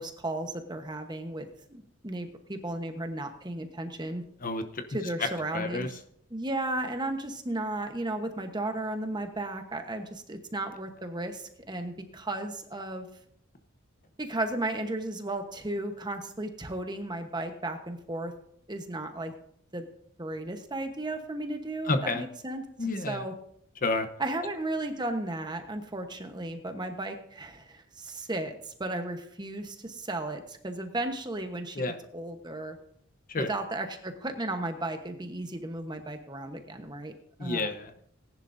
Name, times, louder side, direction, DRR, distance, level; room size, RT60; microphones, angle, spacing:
voice 1, 0.0-4.2 4.9-5.9 6.3-13.1 14.2-18.3 18.7-19.3 19.7-19.9 20.2-22.6 23.1-23.3 24.2-31.8 32.1-32.8 33.4-37.1 37.4-37.7, right 2 dB, 20° right, 6 dB, 1.1 m, -34 dB
voice 2, 4.4-4.8 5.2-5.3 5.5-5.9 21.9-22.2 22.8-23.2 23.8-24.1 31.8-32.0 33.3-33.5 37.4-38.0, left 3 dB, 40° left, 8 dB, 0.9 m, -30 dB
18.5 x 10.5 x 2.7 m, 0.69 s
head